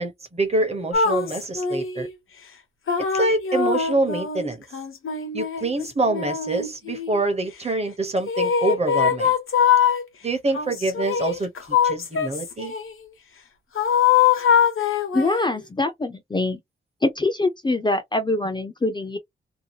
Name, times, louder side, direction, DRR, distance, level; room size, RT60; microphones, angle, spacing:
voice 1, 0.0-2.1 3.1-4.6 5.3-9.3 10.2-11.5 11.8-12.7, right 2 dB, 30° right, 0.8 m, -25 dB
sound 1, 0.9-2.1 2.9-7.2 8.3-10.0 10.5-12.9 13.8-15.6, left 7 dB, 80° left, 0.9 m, -22 dB
voice 2, 15.1-16.6 17.0-19.2, left 2 dB, 20° left, 0.5 m, -24 dB
2.8 x 2.2 x 2.7 m
wide cardioid pair, 180°, 21 cm